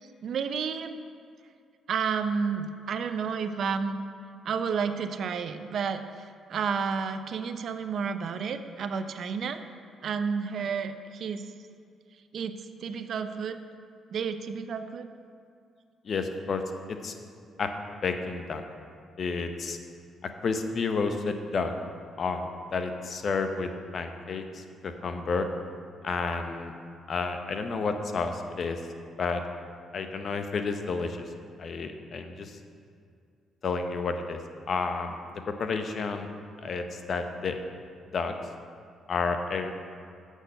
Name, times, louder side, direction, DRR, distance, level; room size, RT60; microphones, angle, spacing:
voice 1, 0.2-1.0 1.9-4.0 4.4-6.0 6.5-9.6 10.0-11.4 12.3-13.6 14.1-15.1, right 6 dB, 60° right, 9 dB, 0.5 m, -31 dB
voice 2, 16.0-16.6 16.9-17.2 17.6-17.7 18.0-18.6 19.2-19.8 20.4-21.7 22.2-25.5 26.0-26.7 27.1-28.8 29.2-29.4 29.9-31.3 31.6-32.6 33.6-34.4 34.7-36.3 36.6-37.6 38.1-38.3 39.1-39.7, left 4 dB, 50° left, 6 dB, 0.7 m, -31 dB
7.9 x 6.4 x 5.5 m, 2.3 s
cardioid pair, 90°, 0 cm